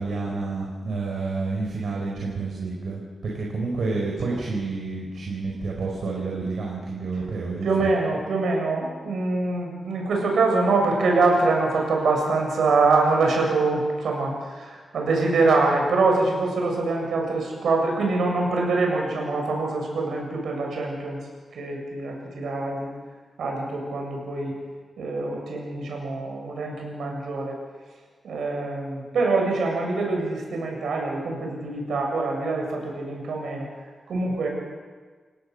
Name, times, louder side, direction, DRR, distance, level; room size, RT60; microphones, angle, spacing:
voice 1, 0.0-7.7, right 3 dB, 70° right, -2 dB, 4.8 m, -29 dB
voice 2, 7.6-21.2 21.5-22.9 23.4-24.5 25.0-27.6 28.2-33.7 34.1-34.5, right 3 dB, 85° right, 0 dB, 7.3 m, -24 dB
28.5 x 18.0 x 6.7 m, 1.5 s
wide cardioid pair, 140°, 0 cm